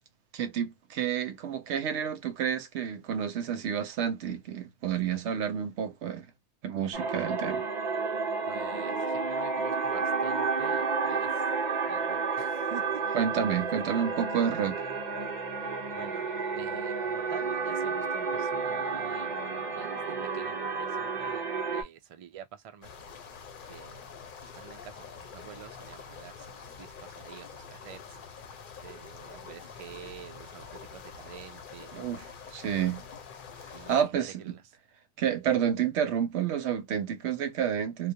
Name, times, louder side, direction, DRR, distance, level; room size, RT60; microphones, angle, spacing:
voice 1, 0.3-6.3 6.6-7.7 13.1-14.8 31.9-33.0 33.9-34.6 35.2-38.1, right 8 dB, 85° right, 0.9 m, -30 dB
sound 1, 6.9-21.8, right 4 dB, 45° right, 0.8 m, -31 dB
voice 2, 8.5-11.4 11.8-14.1 15.8-16.3 16.5-22.9 23.7-28.2 28.8-32.0 33.7-34.6, right 8 dB, 60° right, 0.3 m, -48 dB
sound 2, 22.8-34.0, left 6 dB, 55° left, 0.6 m, -46 dB
2.3 x 2.0 x 2.6 m
omnidirectional pair, 1.1 m